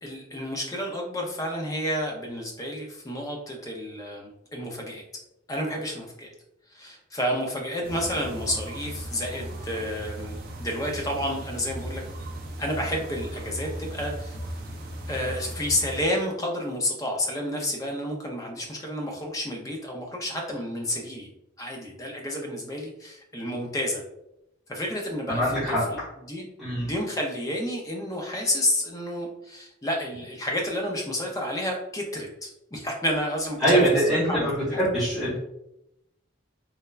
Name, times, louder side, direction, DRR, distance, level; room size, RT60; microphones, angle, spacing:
voice 1, 0.0-5.0 5.5-6.3 6.7-12.0 12.6-14.4 15.1-21.3 21.6-24.0 24.7-26.0 26.3-26.5 26.8-34.8, left 1 dB, 15° left, 1 dB, 0.4 m, -30 dB
sound 1, 7.8-16.0, right 1 dB, 50° right, 0.4 m, -37 dB
voice 2, 25.3-25.8 26.6-26.9 33.6-35.4, right 1 dB, ahead, -12 dB, 0.8 m, -23 dB
3.1 x 2.1 x 2.3 m, 0.86 s
head